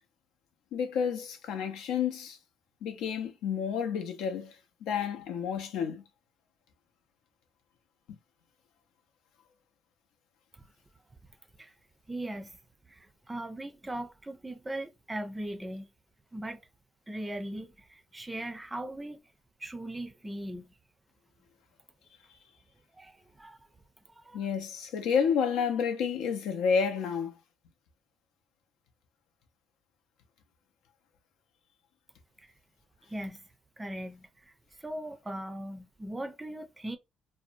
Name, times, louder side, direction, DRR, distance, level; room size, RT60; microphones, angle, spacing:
voice 1, 0.7-2.4 2.8-4.6 4.8-6.0 24.3-27.3, left 6 dB, 85° left, 0.5 m, -30 dB
voice 2, 12.1-12.6 12.9-15.9 16.3-16.6 17.1-19.2 19.6-20.8 22.9-23.6 24.2-24.5 33.0-33.4 33.8-34.5 34.8-37.0, right 1 dB, 15° right, 0.4 m, -39 dB
2.5 x 2.1 x 2.6 m
cardioid pair, 125°, 0 cm